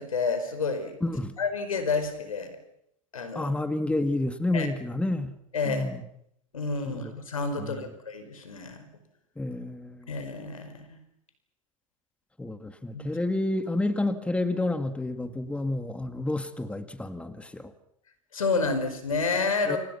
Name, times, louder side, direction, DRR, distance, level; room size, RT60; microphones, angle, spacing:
voice 1, 0.0-1.0 1.4-2.5 3.1-3.5 4.5-4.7 5.5-5.9 6.5-8.9 10.1-11.0 12.9-13.0 18.3-19.8, left 4 dB, 90° left, 9 dB, 5.0 m, -29 dB
voice 2, 1.0-1.3 3.3-5.3 5.6-6.0 6.9-7.1 7.6-7.8 9.4-10.1 12.4-17.7 19.7-19.8, left 2 dB, 5° left, 9 dB, 2.1 m, -29 dB
29.0 x 25.5 x 5.8 m, 0.73 s
hypercardioid pair, 95°, 17 cm